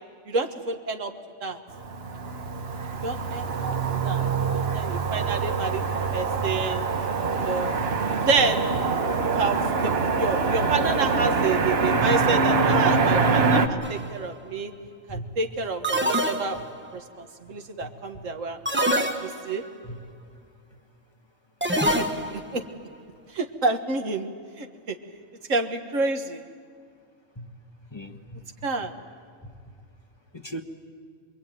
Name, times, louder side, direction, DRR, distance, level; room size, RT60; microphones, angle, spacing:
voice 1, 0.3-1.1 1.4-1.6 3.0-3.7 4.0-4.3 4.7-6.8 7.4-7.7 8.2-8.7 9.2-14.7 15.1-16.6 16.9-18.8 19.2-19.6 21.8-22.6 23.3-24.3 24.6-25.0 25.5-26.4 28.6-28.9, right 3 dB, 70° right, 5 dB, 1.8 m, -28 dB
Motor vehicle (road), 1.7-13.7, right 4 dB, 50° right, 1.4 m, -24 dB
sound 1, 13.8-14.2 15.8-16.9 18.6-19.7 21.6-22.5, equal, 10° right, 0.9 m, -25 dB
voice 2, 27.9-28.4 30.3-30.6, right 1 dB, 20° left, 3 dB, 1.5 m, -37 dB
26.5 x 22.0 x 9.3 m, 2.1 s
omnidirectional pair, 1.4 m